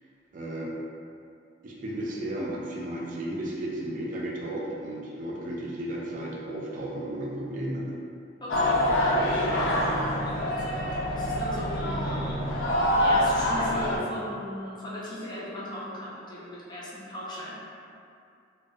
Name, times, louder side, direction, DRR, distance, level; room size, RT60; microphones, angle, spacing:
voice 1, 0.3-0.7 1.6-7.8, right 1 dB, 45° right, -3 dB, 0.3 m, -34 dB
voice 2, 8.4-9.8 10.2-12.6 13.0-17.6, equal, 25° left, -7 dB, 0.5 m, -38 dB
sound 1, 8.5-14.0, left 1 dB, 80° left, 0.4 m, -25 dB
2.5 x 2.1 x 2.4 m, 2.5 s
head